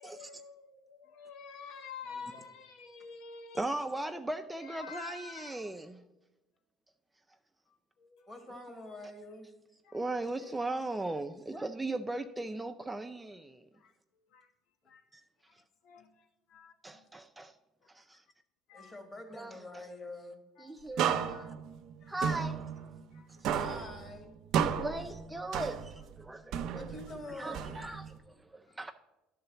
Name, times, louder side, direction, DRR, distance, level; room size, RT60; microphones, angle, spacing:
voice 1, 0.0-3.7 4.4-5.7 7.7-8.3 9.8-10.0 10.4-10.5 11.5-11.6 13.7-14.5 14.9-15.0 15.5-17.1 17.8-17.9 18.7-18.9 20.6-21.5 22.0-22.2 23.1-23.3 24.8-25.0 25.3-25.6 28.7-28.8, left 5 dB, 70° left, 0.7 m, -50 dB
voice 2, 2.0-2.5 8.3-9.5 18.7-20.4 23.5-24.3 26.7-27.8, left 2 dB, 25° left, 1.8 m, -46 dB
voice 3, 3.5-6.0 9.9-13.7 15.1-15.2 15.5-15.6 16.8-17.5 17.9-18.2 19.3-19.9 20.6-21.1 22.1-22.7 24.8-26.8 27.4-28.9, right 2 dB, 10° right, 0.4 m, -38 dB
sound 1, 21.0-23.2 23.4-26.1 26.5-28.2, right 8 dB, 65° right, 0.6 m, -34 dB
11.0 x 3.9 x 6.8 m
supercardioid pair, 105°, 0 cm